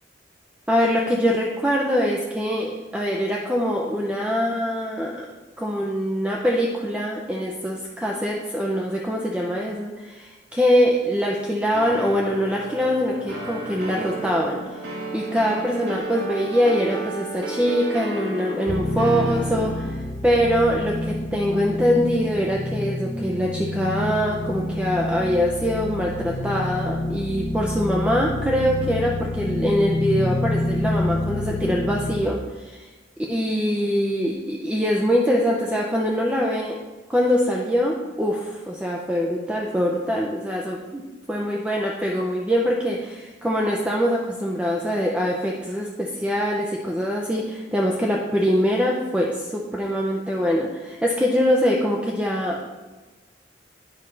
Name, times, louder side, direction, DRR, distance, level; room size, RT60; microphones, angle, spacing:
voice 1, 0.7-5.3 5.6-14.8 15.1-32.9 33.3-36.8 37.1-41.0 41.3-52.7, equal, 5° right, -2 dB, 0.5 m, -23 dB
sound 1, 11.7-20.0, right 1 dB, 75° right, 1.4 m, -33 dB
sound 2, 18.7-32.2, left 2 dB, 35° left, 0.7 m, -28 dB
9.6 x 5.3 x 3.3 m, 1.2 s
head